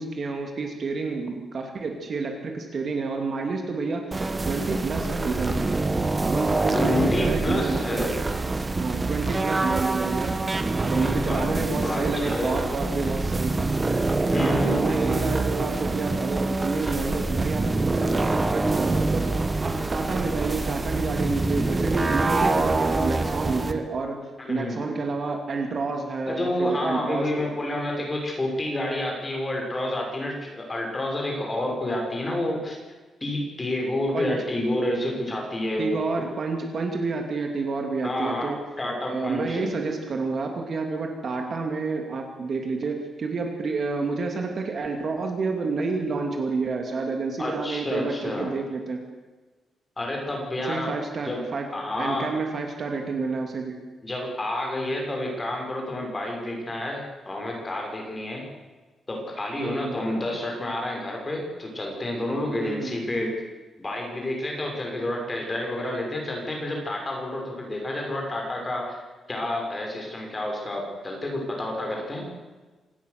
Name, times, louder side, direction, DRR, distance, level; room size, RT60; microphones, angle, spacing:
voice 1, 0.0-4.1 4.5-5.7 6.3-8.1 8.8-10.4 10.8-13.8 14.3-19.3 19.6-24.2 24.5-27.3 34.1-34.4 35.8-38.6 39.0-49.1 50.6-51.7 52.0-53.8 59.6-60.0 62.6-63.0, right 4 dB, 40° right, 3 dB, 2.7 m, -29 dB
sound 1, 4.1-23.7, right 2 dB, 15° right, 1.3 m, -25 dB
voice 2, 6.7-8.2 11.0-12.7 14.3-14.8 24.5-24.8 26.3-32.8 33.2-36.0 38.0-39.7 47.4-48.5 50.0-50.9 51.2-51.4 51.7-52.3 54.0-58.4 59.1-63.3 63.8-69.0 69.3-72.3, left 1 dB, 20° left, 0 dB, 6.0 m, -29 dB
26.5 x 19.0 x 6.8 m, 1.3 s
wide cardioid pair, 180°, 0 cm